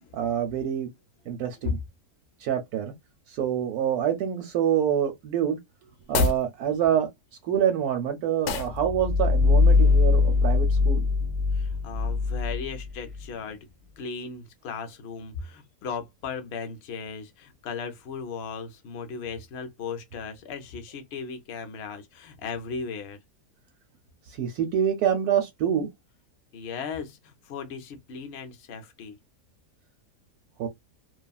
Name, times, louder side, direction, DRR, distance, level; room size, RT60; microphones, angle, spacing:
voice 1, 0.1-0.9 1.3-1.8 2.4-2.9 3.3-5.6 6.1-7.1 7.4-11.0 24.4-25.9 30.6-30.7, right 9 dB, 70° right, 1.0 m, -26 dB
sound 1, 6.0-6.5 8.4-8.8, left 4 dB, 90° left, 1.2 m, -25 dB
sound 2, 8.6-13.2, left 4 dB, ahead, 0.6 m, -22 dB
voice 2, 11.5-13.7 14.0-23.2 26.5-29.2, left 5 dB, 70° left, 0.6 m, -36 dB
2.9 x 2.3 x 2.3 m
omnidirectional pair, 1.8 m